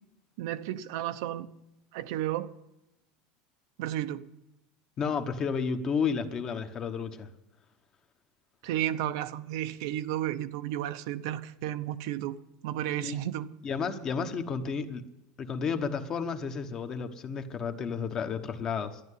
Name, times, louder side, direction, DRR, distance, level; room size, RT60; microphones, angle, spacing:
voice 1, 0.4-1.5 1.9-2.5 3.8-4.3 8.6-12.4 12.6-13.5, right 12 dB, 70° right, 0.8 m, -32 dB
voice 2, 5.0-7.3 13.0-13.2 13.6-15.0 15.4-19.0, left 6 dB, 25° left, 1.1 m, -32 dB
12.0 x 10.5 x 9.7 m
supercardioid pair, 160°, 2 cm